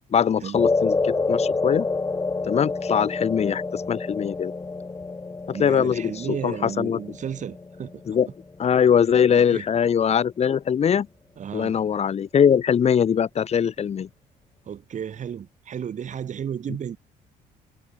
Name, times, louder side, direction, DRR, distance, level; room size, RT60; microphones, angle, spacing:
voice 1, 0.0-1.9 2.4-4.5 5.5-7.0 8.1-8.3 8.6-11.1 11.5-14.1, left 8 dB, 40° left, 1.2 m, -22 dB
sound 1, 0.5-9.0, left 3 dB, 20° left, 1.9 m, -28 dB
voice 2, 5.5-8.2 9.3-9.7 11.4-11.7 14.6-17.0, right 8 dB, 45° right, 4.4 m, -33 dB
cardioid pair, 110°, 17 cm